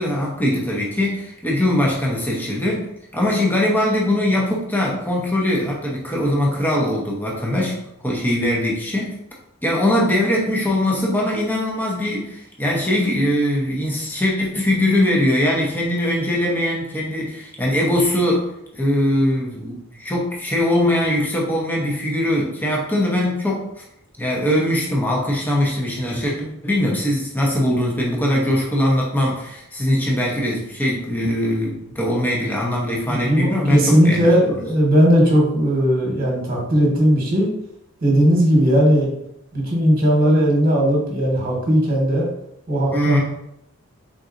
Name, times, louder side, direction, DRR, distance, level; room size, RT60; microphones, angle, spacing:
voice 1, 0.0-2.9 3.1-9.2 9.6-23.7 24.2-34.3 42.9-43.2, left 1 dB, 10° left, -3 dB, 0.7 m, -21 dB
voice 2, 33.1-37.5 38.0-39.1 39.5-42.3 42.7-43.2, equal, 45° right, -1 dB, 1.2 m, -17 dB
4.0 x 3.9 x 2.5 m, 0.79 s
head